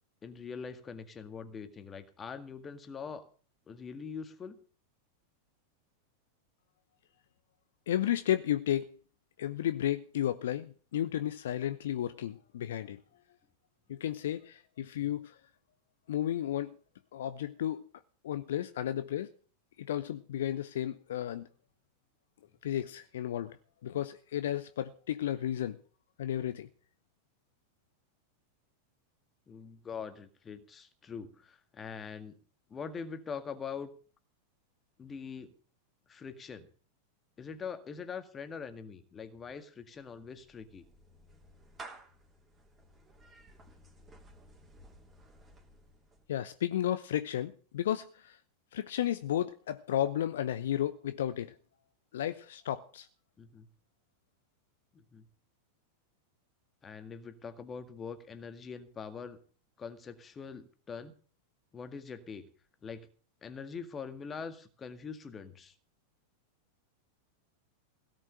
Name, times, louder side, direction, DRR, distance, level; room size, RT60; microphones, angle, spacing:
voice 1, 0.2-3.3 3.7-4.6 15.0-15.1 29.5-32.4 32.7-33.9 35.0-35.5 36.1-36.7 37.4-40.9 53.4-53.7 54.9-55.3 56.8-59.4 59.8-61.1 61.7-62.5 62.8-63.1 63.4-65.7, left 6 dB, 20° left, 1.9 m, -43 dB
voice 2, 7.9-8.9 9.4-13.0 13.9-15.4 16.1-16.8 17.1-17.8 18.2-19.3 19.8-21.5 22.6-23.6 23.8-25.8 26.2-26.7 46.3-48.4 48.7-51.5 52.1-53.1, left 11 dB, 60° left, 0.7 m, -33 dB
Clapping / Meow, 39.9-46.3, right 2 dB, 20° right, 3.1 m, -55 dB
17.0 x 6.3 x 8.8 m
figure-of-eight pair, 90°, 0 cm